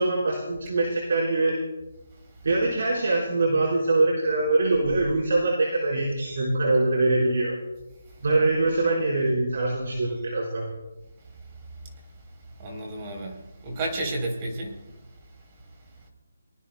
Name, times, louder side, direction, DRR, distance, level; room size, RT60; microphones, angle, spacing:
voice 1, 0.0-1.6 2.4-7.6 8.2-10.7, right 2 dB, 60° right, -3 dB, 4.5 m, -23 dB
voice 2, 12.6-14.7, right 2 dB, 25° right, 2 dB, 3.4 m, -31 dB
23.5 x 19.5 x 2.2 m, 1.1 s
hypercardioid pair, 165°, 0 cm